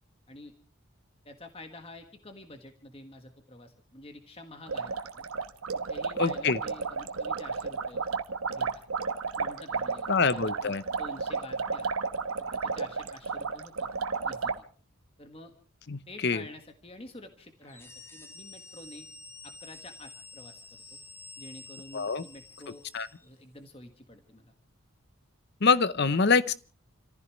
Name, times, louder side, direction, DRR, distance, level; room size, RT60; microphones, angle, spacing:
voice 1, 1.2-5.2 5.7-8.0 8.5-8.7 9.4-11.9 12.5-13.9 14.2-14.6 15.2-15.5 16.1-19.1 19.4-21.0 21.4-22.9 23.2-24.5, left 1 dB, 25° left, 1.6 m, -48 dB
sound 1, 4.6-14.6, right 5 dB, 85° right, 1.1 m, -32 dB
voice 2, 6.2-6.6 10.1-10.8 15.9-16.4 21.9-22.2 22.9-23.1 25.6-26.5, left 4 dB, 50° left, 0.7 m, -25 dB
sound 2, 17.6-23.3, left 3 dB, 10° left, 1.0 m, -49 dB
30.0 x 15.0 x 3.1 m
head